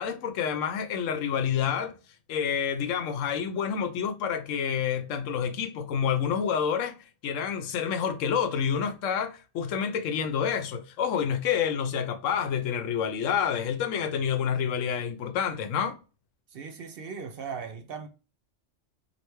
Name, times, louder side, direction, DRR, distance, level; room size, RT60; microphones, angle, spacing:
voice 1, 0.0-2.0 2.3-7.0 7.2-16.0, left 7 dB, 90° left, 1.0 m, -28 dB
voice 2, 16.5-18.1, right 6 dB, 60° right, 0.6 m, -38 dB
3.2 x 2.8 x 3.0 m
omnidirectional pair, 1.3 m